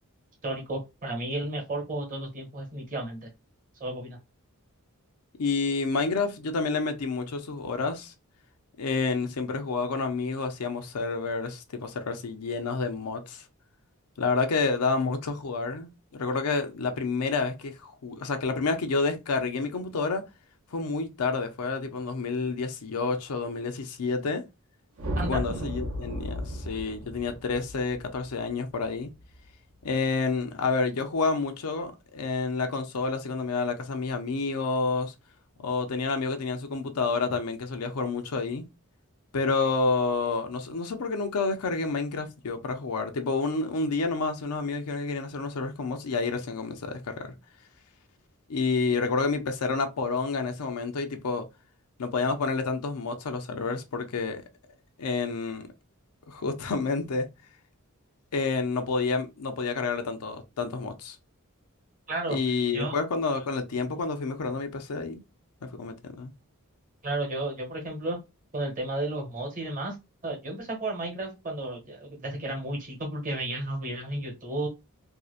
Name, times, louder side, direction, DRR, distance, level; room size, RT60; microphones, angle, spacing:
voice 1, 0.4-3.3 3.8-4.2 25.2-25.6 62.1-62.4 62.7-63.0 67.0-68.2 68.5-69.9 70.2-74.7, right 2 dB, 35° right, 1.0 m, -33 dB
voice 2, 5.4-8.1 8.8-13.4 14.2-20.2 20.7-24.5 25.2-29.1 29.8-35.1 35.6-38.7 39.3-47.3 48.5-51.5 52.0-54.4 55.0-55.7 56.3-57.3 58.3-61.2 62.3-65.2 65.7-66.3, left 4 dB, 90° left, 0.5 m, -29 dB
sound 1, 25.0-29.4, equal, 65° right, 0.6 m, -35 dB
2.7 x 2.1 x 2.4 m
head